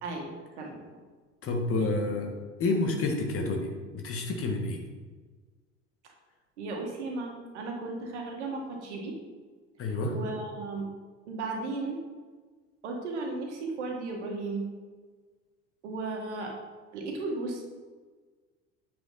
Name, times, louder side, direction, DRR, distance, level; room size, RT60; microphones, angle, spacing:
voice 1, 1.4-2.3 2.6-4.8 9.8-10.1, left 2 dB, 40° left, 3 dB, 1.9 m, -29 dB
voice 2, 6.6-9.2 9.8-10.8 11.3-12.0 12.8-14.7 15.8-16.5 16.9-17.6, right 3 dB, 70° right, 1 dB, 1.9 m, -35 dB
9.2 x 7.1 x 4.0 m, 1.4 s
figure-of-eight pair, 65°, 36 cm